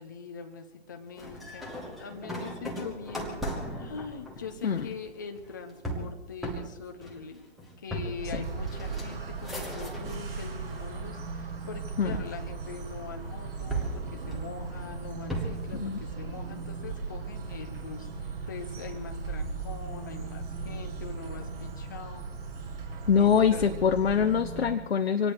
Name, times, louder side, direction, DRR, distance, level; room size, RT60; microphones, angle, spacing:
voice 1, 0.0-22.3 23.1-23.8, left 5 dB, 15° left, 5 dB, 0.6 m, -43 dB
sound 1, 1.2-10.3 10.7-11.4 12.1-13.2 13.7-15.8, right 1 dB, ahead, 1.0 m, -37 dB
sound 2, 8.2-24.8, right 4 dB, 45° right, 6.5 m, -38 dB
voice 2, 23.1-25.3, left 7 dB, 50° left, 6 dB, 0.8 m, -24 dB
24.5 x 18.5 x 3.1 m, 1.1 s
figure-of-eight pair, 135°, 39 cm